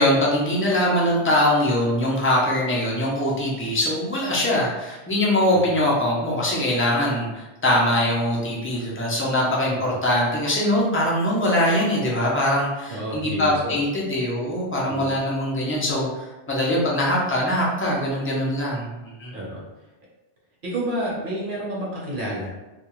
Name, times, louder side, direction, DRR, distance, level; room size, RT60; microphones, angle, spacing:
voice 1, 0.0-19.3, left 1 dB, 20° left, -4 dB, 0.3 m, -22 dB
voice 2, 12.9-13.8 14.9-15.1 19.3-19.9 20.6-22.5, right 1 dB, 50° right, -5 dB, 0.9 m, -30 dB
2.4 x 2.2 x 3.0 m, 1.1 s
omnidirectional pair, 1.2 m